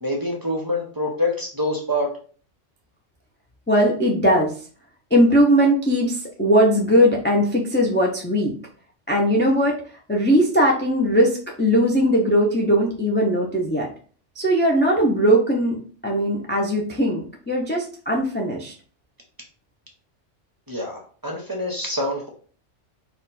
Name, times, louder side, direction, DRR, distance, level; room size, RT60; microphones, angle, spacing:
voice 1, 0.0-2.1 20.7-22.3, left 1 dB, 20° right, 1 dB, 0.8 m, -26 dB
voice 2, 3.7-4.5 5.1-8.5 9.1-9.7 10.1-13.9 14.4-15.8 16.0-18.7, equal, 15° left, -2 dB, 0.4 m, -19 dB
4.3 x 2.4 x 4.0 m, 0.43 s
omnidirectional pair, 1.2 m